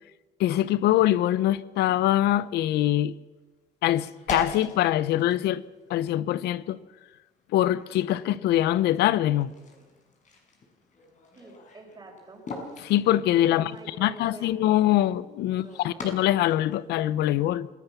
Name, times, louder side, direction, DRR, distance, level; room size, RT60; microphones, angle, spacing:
voice 1, 0.4-3.1 3.8-5.6 5.9-6.8 7.5-9.5 12.8-13.7 14.0-17.7, left 13 dB, 80° left, 0.8 m, -23 dB
sound 1, 0.8-1.0 1.3-1.4 2.4-2.5 2.8-3.2 3.9-17.1, left 3 dB, 45° left, 6.4 m, -42 dB
voice 2, 11.4-12.4 13.5-14.5 15.5-16.0, right 2 dB, 25° right, 5.3 m, -47 dB
27.0 x 17.0 x 7.1 m
cardioid pair, 110°, 17 cm